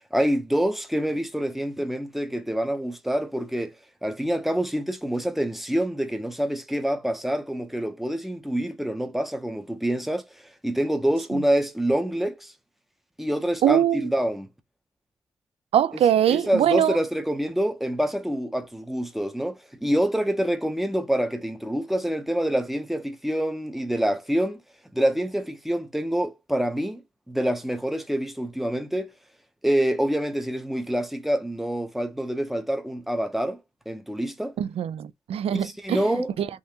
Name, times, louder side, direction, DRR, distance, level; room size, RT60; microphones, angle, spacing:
voice 1, 0.1-3.7 4.0-10.3 10.6-12.5 13.2-14.5 16.3-24.6 24.9-29.1 29.6-33.6 33.9-34.5 35.5-36.3, equal, ahead, 0.5 m, -26 dB
voice 2, 13.6-14.1 15.7-17.0 34.6-36.0 36.4-36.5, right 10 dB, 80° right, 0.4 m, -22 dB
3.6 x 2.7 x 2.7 m
wide cardioid pair, 150°, 10 cm